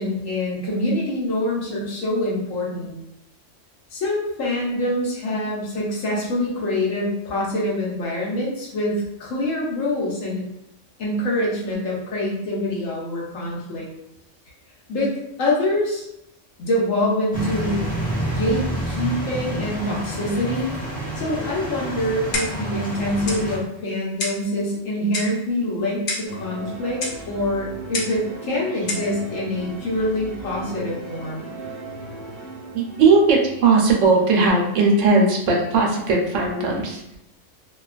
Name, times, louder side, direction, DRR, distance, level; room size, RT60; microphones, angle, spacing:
voice 1, 0.0-3.0 3.9-10.4 11.0-13.9 14.9-15.1 15.4-16.0 16.6-17.9 18.2-20.7 21.2-31.4, left 1 dB, 90° left, -4 dB, 1.2 m, -25 dB
sound 1, 17.3-23.6, right 1 dB, 15° left, 0.4 m, -28 dB
Clock, 22.3-22.7 23.3-23.5 24.2-24.5 25.1-25.4 26.1-26.3 27.0-27.2 27.9-28.2 28.9-29.1, left 3 dB, 60° left, 0.6 m, -28 dB
sound 2, 26.2-34.9, right 2 dB, 40° right, 0.7 m, -37 dB
voice 2, 32.7-37.0, right 3 dB, 75° right, 0 dB, 1.0 m, -19 dB
2.8 x 2.2 x 2.3 m, 0.85 s
omnidirectional pair, 1.3 m